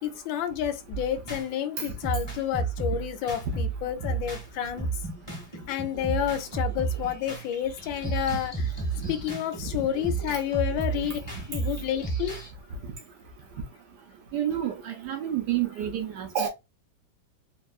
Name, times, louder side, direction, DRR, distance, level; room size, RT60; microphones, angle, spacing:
voice 1, 0.0-4.9 5.7-8.5 9.1-11.2 11.5-12.4, left 10 dB, 75° left, 1.3 m, -30 dB
sound 1, 0.9-1.5 2.0-4.5 4.8-12.5, right 4 dB, 20° left, 0.9 m, -32 dB
voice 2, 14.3-16.5, right 9 dB, 75° right, 1.0 m, -29 dB
3.5 x 2.2 x 2.3 m
omnidirectional pair, 2.2 m